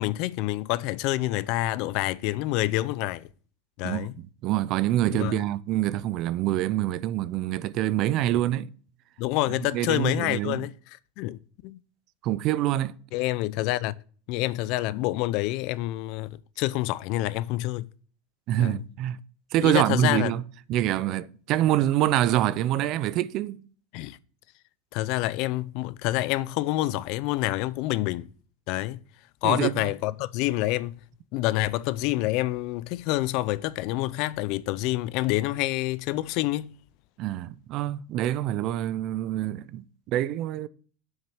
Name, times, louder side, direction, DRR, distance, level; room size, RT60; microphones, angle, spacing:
voice 1, 0.0-3.3 3.8-4.1 5.1-5.4 9.2-10.7 11.2-11.8 13.1-13.9 14.3-17.9 18.6-18.8 19.6-20.3 23.9-24.2 24.9-28.3 28.7-29.0 29.4-31.0 31.3-36.7, left 17 dB, 55° left, 0.4 m, -27 dB
voice 2, 3.8-8.7 9.7-10.7 12.2-12.9 18.5-19.2 19.5-20.4 20.7-23.6 29.4-29.9 37.2-40.7, right 13 dB, 45° right, 0.5 m, -26 dB
7.2 x 6.2 x 5.9 m
supercardioid pair, 140°, 0 cm